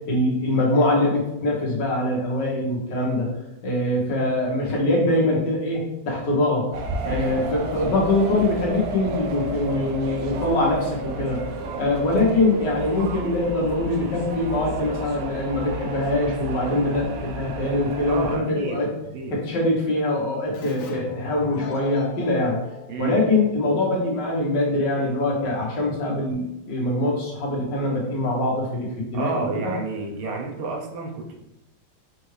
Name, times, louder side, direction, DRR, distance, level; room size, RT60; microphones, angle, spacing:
voice 1, 0.1-3.3 3.6-6.7 7.0-11.4 11.8-18.9 19.3-22.6 23.0-29.7 30.2-30.3, left 2 dB, 55° left, -2 dB, 1.7 m, -23 dB
sound 1, 6.7-18.4, right 2 dB, 75° right, 1.2 m, -32 dB
voice 2, 7.0-7.5 18.1-18.8 19.1-19.4 22.9-23.2 29.1-31.3, right 4 dB, 90° right, 0 dB, 1.7 m, -30 dB
Keyboard (musical), 20.5-23.9, left 5 dB, 85° left, 1.6 m, -39 dB
5.6 x 2.6 x 3.2 m, 0.86 s
omnidirectional pair, 2.4 m